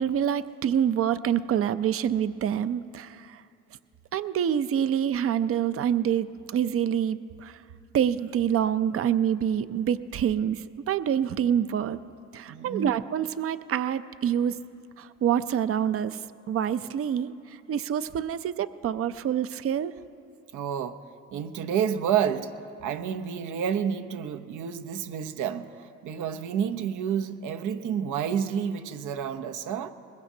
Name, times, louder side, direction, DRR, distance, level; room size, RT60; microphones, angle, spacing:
voice 1, 0.0-3.4 4.1-7.6 7.9-12.0 12.3-14.6 15.0-16.2 16.5-19.9, right 9 dB, 50° right, 13 dB, 0.5 m, -26 dB
voice 2, 12.5-13.0 20.5-21.0 21.3-22.5 22.8-29.9, right 8 dB, 80° right, 7 dB, 0.8 m, -29 dB
22.0 x 21.0 x 2.8 m, 2.6 s
cardioid pair, 90°, 30 cm